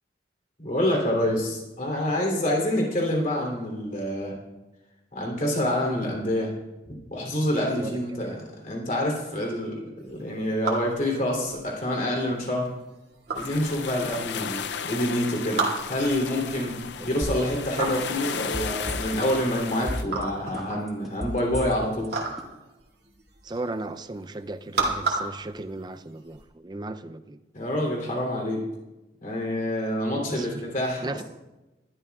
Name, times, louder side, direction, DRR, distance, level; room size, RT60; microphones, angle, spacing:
voice 1, 0.6-4.4 5.1-6.5 7.1-8.4 8.6-12.7 13.3-16.8 17.0-22.1 27.5-28.6 29.2-31.2, left 1 dB, 45° left, -1 dB, 3.0 m, -27 dB
voice 2, 7.8-8.4 14.4-14.5 17.0-17.1 23.4-27.4 30.1-30.7 31.0-31.2, right 2 dB, 25° right, 10 dB, 0.4 m, -36 dB
sound 1, 10.1-26.4, right 3 dB, 60° right, 2.3 m, -34 dB
sound 2, 13.4-20.0, left 7 dB, 75° left, 0.5 m, -34 dB
sound 3, 17.2-17.6 17.9-19.4 19.7-20.2 20.5-22.1 22.4-22.5, equal, ahead, 1.5 m, -33 dB
20.5 x 12.0 x 2.4 m, 1.0 s
head